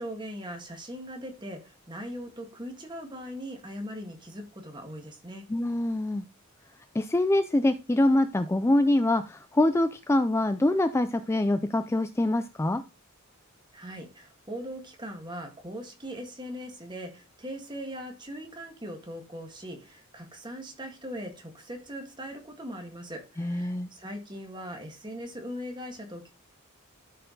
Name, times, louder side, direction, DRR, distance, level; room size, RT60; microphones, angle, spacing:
voice 1, 0.0-5.5 13.7-26.3, equal, 20° right, 3 dB, 1.8 m, -40 dB
voice 2, 5.5-6.2 6.9-12.8 23.4-23.9, left 1 dB, 10° left, 10 dB, 0.3 m, -25 dB
12.5 x 4.6 x 3.9 m, 0.30 s
head